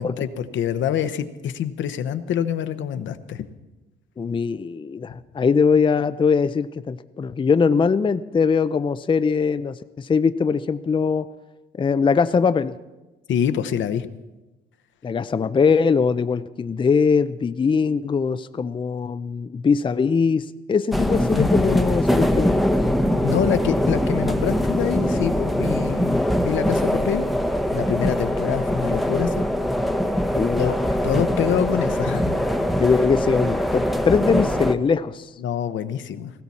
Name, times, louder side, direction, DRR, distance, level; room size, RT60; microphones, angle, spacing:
voice 1, 0.0-3.4 13.3-14.1 21.4-21.8 23.2-27.3 27.7-29.4 30.6-30.7 31.0-32.4 35.4-36.3, left 9 dB, 70° left, 11 dB, 0.9 m, -26 dB
voice 2, 4.2-11.3 11.8-12.7 15.0-22.6 30.4-30.7 32.8-35.3, left 5 dB, 25° left, 11 dB, 0.5 m, -21 dB
sound 1, 20.9-34.7, equal, ahead, 0.9 m, -22 dB
18.0 x 15.5 x 4.2 m, 1.1 s
cardioid pair, 90°, 20 cm